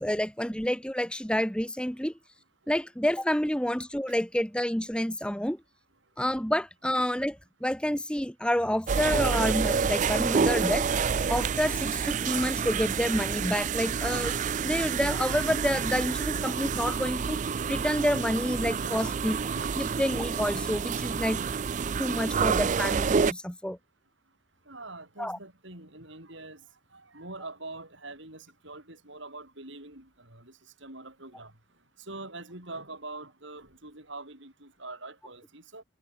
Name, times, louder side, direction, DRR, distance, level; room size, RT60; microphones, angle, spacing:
voice 1, 0.0-2.1 2.7-5.6 6.2-10.9 11.3-14.4 14.6-17.4 17.7-19.4 19.8-21.4 22.0-23.8 25.2-25.4, equal, 5° left, 1.6 m, -29 dB
sound 1, 8.9-23.3, right 6 dB, 35° right, 0.4 m, -28 dB
voice 2, 24.7-31.5 32.0-35.8, right 2 dB, 60° right, 7.1 m, -44 dB
head